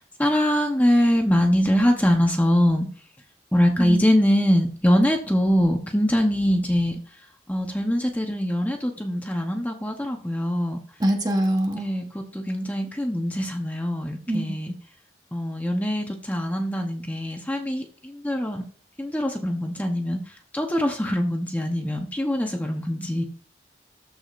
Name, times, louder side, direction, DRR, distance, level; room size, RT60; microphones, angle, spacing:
voice 1, 0.0-2.9 3.5-7.0 7.5-10.8 11.8-14.7 15.3-18.6 19.0-20.2 20.5-23.2, equal, 10° left, 2 dB, 0.9 m, -23 dB
voice 2, 3.8-4.1 11.0-11.9 14.3-14.6, right 1 dB, 20° right, 3 dB, 1.1 m, -24 dB
13.5 x 4.9 x 2.6 m, 0.42 s
head